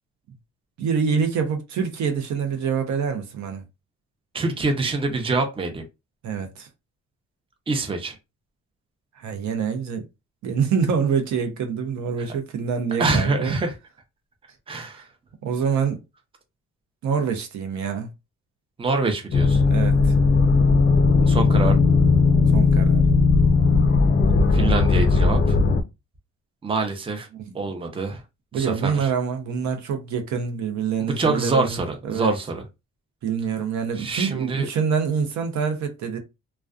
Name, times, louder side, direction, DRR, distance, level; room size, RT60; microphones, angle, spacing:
voice 1, 0.8-3.6 6.2-6.7 9.2-10.1 10.4-13.5 15.4-16.0 17.0-18.1 19.7-20.1 22.5-23.1 27.5-27.6 28.5-32.3 33.2-36.2, right 6 dB, 65° right, 0.7 m, -26 dB
voice 2, 4.3-5.8 7.7-8.2 13.0-13.7 14.7-15.0 18.8-19.6 21.2-21.8 24.5-25.6 26.6-27.3 27.5-28.2 28.5-29.1 31.0-32.6 34.0-34.7, right 3 dB, 20° right, 0.6 m, -25 dB
sound 1, 19.3-25.8, left 4 dB, 35° left, 0.4 m, -17 dB
2.4 x 2.2 x 2.3 m
cardioid pair, 90°, 30 cm